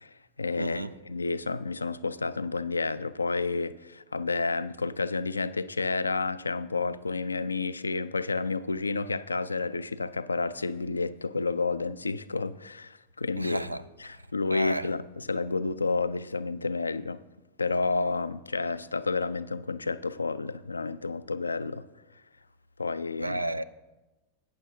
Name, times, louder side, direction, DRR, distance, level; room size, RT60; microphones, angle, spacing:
voice 1, 0.0-13.6 14.0-17.2 17.6-21.9 22.8-23.4, left 3 dB, 80° left, 0.3 m, -30 dB
voice 2, 0.6-0.9 13.4-13.8 14.5-14.9 23.2-23.6, right 1 dB, 85° right, 0.3 m, -31 dB
14.5 x 9.1 x 2.7 m
figure-of-eight pair, 90°, 0 cm